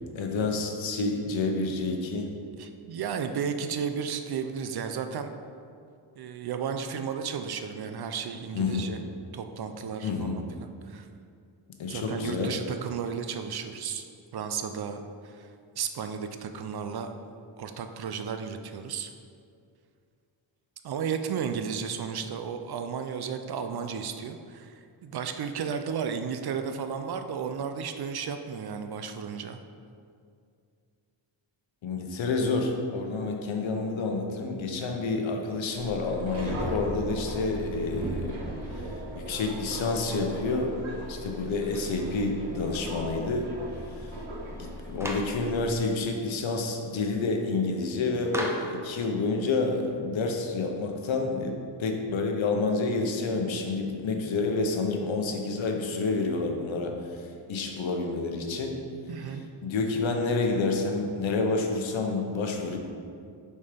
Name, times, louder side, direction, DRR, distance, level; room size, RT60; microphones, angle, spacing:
voice 1, 0.0-2.3 8.5-8.9 10.0-10.4 11.8-12.5 31.8-38.4 39.1-40.7 41.1-43.5 44.0-44.1 44.6-58.8 59.6-62.8, left 3 dB, 80° left, 3 dB, 1.0 m, -29 dB
voice 2, 2.6-5.3 6.2-9.0 9.3-11.1 11.9-14.0 14.3-15.5 15.8-17.1 17.6-19.1 20.8-29.6 59.1-59.4, right 6 dB, 55° right, 7 dB, 0.5 m, -33 dB
Subway metro underground, 35.7-45.8, equal, 85° right, 1.7 m, -37 dB
Clapping, 45.0-45.4 48.3-48.8, equal, 5° right, 0.6 m, -33 dB
6.9 x 4.4 x 5.0 m, 2.3 s
wide cardioid pair, 140°, 46 cm